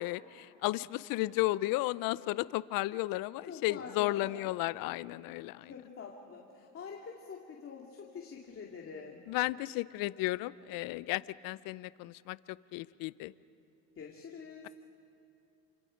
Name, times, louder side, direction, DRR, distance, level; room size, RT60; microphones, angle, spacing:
voice 1, 0.0-5.7 9.3-13.3, left 18 dB, 60° left, 18 dB, 0.6 m, -34 dB
voice 2, 3.5-4.5 5.7-9.2 14.0-14.7, left 5 dB, 35° left, -1 dB, 2.3 m, -46 dB
28.0 x 26.0 x 5.2 m, 2.7 s
supercardioid pair, 110°, 39 cm